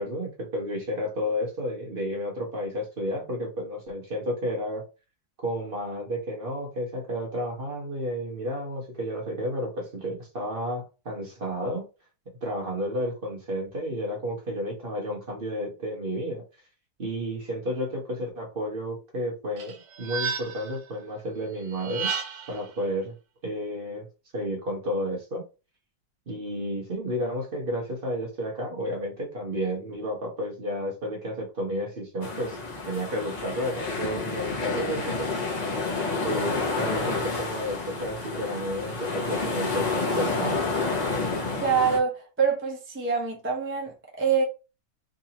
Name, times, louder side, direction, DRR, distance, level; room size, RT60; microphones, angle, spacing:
voice 1, 0.0-4.8 5.4-11.9 12.4-16.4 17.0-22.1 22.5-23.1 23.4-24.1 24.3-25.4 26.3-32.6 32.8-35.3 36.2-40.6, equal, 40° right, 1.2 m, -31 dB
sound 1, 19.6-20.8 21.7-22.6, right 6 dB, 75° right, 1.3 m, -32 dB
sound 2, 32.2-42.0, left 3 dB, 30° left, 0.9 m, -29 dB
voice 2, 41.5-44.4, right 6 dB, 10° right, 0.6 m, -25 dB
3.7 x 2.8 x 2.9 m
omnidirectional pair, 1.7 m